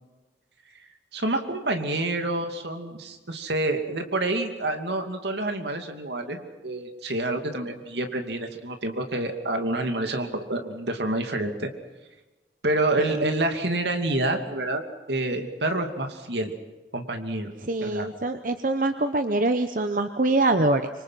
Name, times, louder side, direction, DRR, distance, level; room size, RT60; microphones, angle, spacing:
voice 1, 1.1-11.7 12.6-14.8 15.1-16.5 16.9-17.5 17.8-18.1, right 2 dB, 75° right, 5 dB, 2.6 m, -28 dB
voice 2, 17.6-20.9, right 2 dB, 50° right, 8 dB, 0.9 m, -24 dB
25.5 x 25.0 x 5.9 m, 1.2 s
head